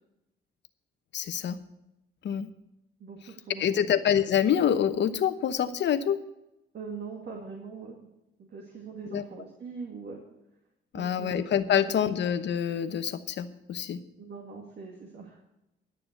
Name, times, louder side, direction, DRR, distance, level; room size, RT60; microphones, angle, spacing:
voice 1, 1.1-1.6 2.2-2.5 3.6-6.2 9.1-9.2 10.9-14.0, left 9 dB, 65° left, 10 dB, 1.0 m, -26 dB
voice 2, 3.0-3.9 6.7-8.0 8.4-10.2 10.9-12.1 14.2-15.4, right 4 dB, 55° right, 0 dB, 2.2 m, -42 dB
11.5 x 6.8 x 8.1 m, 0.89 s
cardioid pair, 90°, 20 cm